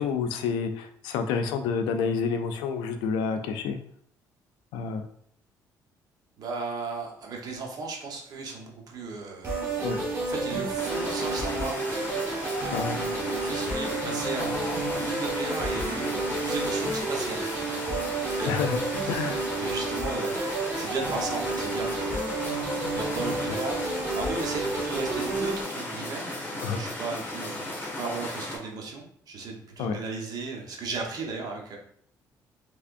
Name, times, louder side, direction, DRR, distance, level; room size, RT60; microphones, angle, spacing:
voice 1, 0.0-3.8 4.7-5.0 9.8-10.0 12.7-13.0 18.5-18.8 19.1-19.5 26.6-26.8 29.8-30.0, left 5 dB, 90° left, 7 dB, 0.4 m, -28 dB
voice 2, 6.4-9.7 10.2-11.9 12.8-17.8 18.4-18.5 19.0-20.4 20.8-22.5 22.9-31.8, right 4 dB, 60° right, 0 dB, 1.0 m, -36 dB
sound 1, 9.4-25.6, right 2 dB, 35° right, 1.4 m, -30 dB
sound 2, 10.8-28.6, left 2 dB, 25° left, 1.5 m, -36 dB
3.4 x 3.3 x 2.5 m, 0.64 s
cardioid pair, 85°, 7 cm